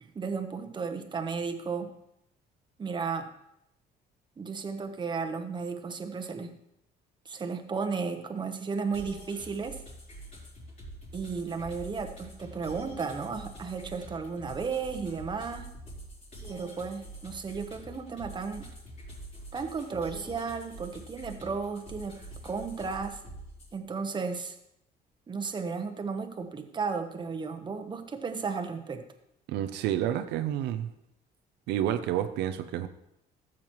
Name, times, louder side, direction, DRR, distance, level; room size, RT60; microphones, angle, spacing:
voice 1, 0.1-1.9 2.8-3.3 4.4-6.6 7.2-9.8 11.1-15.7 16.5-18.6 19.5-23.2 23.7-24.5 25.3-29.0, right 5 dB, 25° right, 6 dB, 1.0 m, -34 dB
sound 1, 8.9-23.7, right 1 dB, 45° left, 4.2 m, -46 dB
voice 2, 29.5-30.9 31.7-32.9, right 11 dB, 85° right, 9 dB, 0.6 m, -29 dB
14.0 x 7.4 x 3.1 m, 0.82 s
cardioid pair, 110°, 17 cm